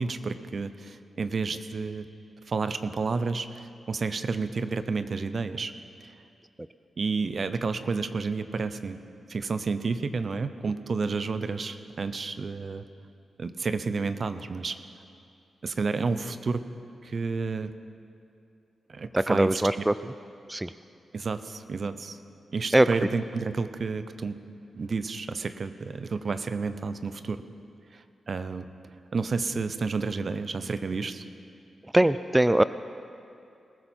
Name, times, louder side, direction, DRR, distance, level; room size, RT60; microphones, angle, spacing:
voice 1, 0.0-2.1 2.5-5.7 7.0-9.0 9.3-12.8 13.4-14.8 15.6-16.6 17.0-17.7 18.9-19.6 21.1-22.2 22.5-24.4 24.7-27.4 27.9-28.7 29.1-31.2, right 4 dB, 60° right, 11 dB, 0.7 m, -30 dB
voice 2, 19.1-19.9 20.5-20.7 22.7-22.9 31.9-32.6, right 1 dB, 15° right, 13 dB, 0.4 m, -21 dB
21.0 x 14.0 x 4.4 m, 2.5 s
supercardioid pair, 45°, 0 cm